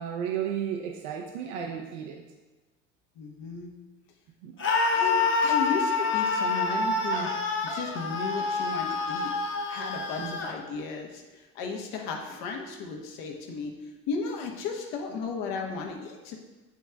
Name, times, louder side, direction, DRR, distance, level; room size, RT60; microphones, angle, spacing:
voice 1, 0.0-2.2 4.4-4.5 10.2-10.4, right 8 dB, 75° right, 3 dB, 0.7 m, -33 dB
voice 2, 3.2-3.7 4.9-7.3 7.6-9.3 9.7-13.7 14.1-16.4, left 4 dB, 65° left, 1 dB, 1.2 m, -35 dB
Screaming, 4.6-10.5, left 4 dB, 35° left, 1.1 m, -27 dB
8.8 x 3.3 x 3.4 m, 1.2 s
hypercardioid pair, 65°, 37 cm